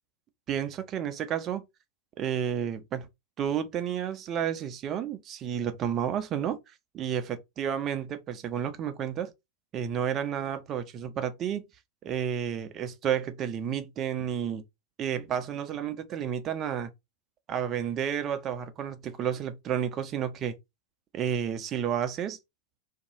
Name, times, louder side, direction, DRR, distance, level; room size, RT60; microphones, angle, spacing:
voice 1, 0.5-1.6 2.2-3.1 3.4-6.6 6.9-9.3 9.7-11.6 12.0-14.6 15.0-16.9 17.5-20.6 21.1-22.4, right 9 dB, 30° right, 0.5 m, -31 dB
2.6 x 2.2 x 2.7 m
figure-of-eight pair, 90°, 0 cm